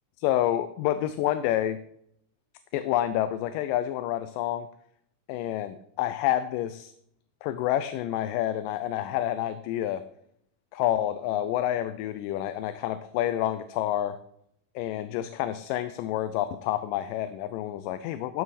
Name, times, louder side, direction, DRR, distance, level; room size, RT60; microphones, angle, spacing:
voice 1, 0.2-1.8 2.7-4.7 5.3-6.9 7.4-10.0 10.7-14.2 14.8-18.4, left 12 dB, 85° left, 11 dB, 2.2 m, -28 dB
12.5 x 7.1 x 4.2 m, 0.72 s
omnidirectional pair, 3.8 m